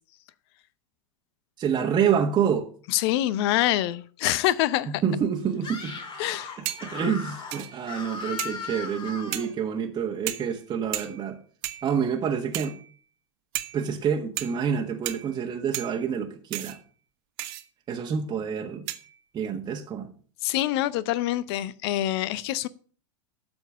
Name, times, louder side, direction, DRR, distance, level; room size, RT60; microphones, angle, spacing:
voice 1, 1.6-2.7 4.9-6.0 6.8-11.4 11.8-12.8 13.7-16.8 17.9-18.8 19.3-20.1, right 7 dB, 25° right, 1.6 m, -27 dB
voice 2, 2.9-4.9 6.2-6.8 20.4-22.7, left 14 dB, 55° left, 0.7 m, -25 dB
Screaming, 5.6-9.5, left 4 dB, 30° left, 2.5 m, -37 dB
sound 1, 5.8-6.2 6.6-7.1 7.5-8.0 8.4-8.8 9.3-9.6 10.3-10.7 10.9-11.4 11.6-12.1 12.5-13.0 13.5-13.9 14.4-14.7 15.1-15.4 15.7-16.1 16.5-16.8 17.4-17.6 18.9-19.2, right 16 dB, 55° right, 1.2 m, -36 dB
12.5 x 4.4 x 8.4 m
hypercardioid pair, 100°, 16 cm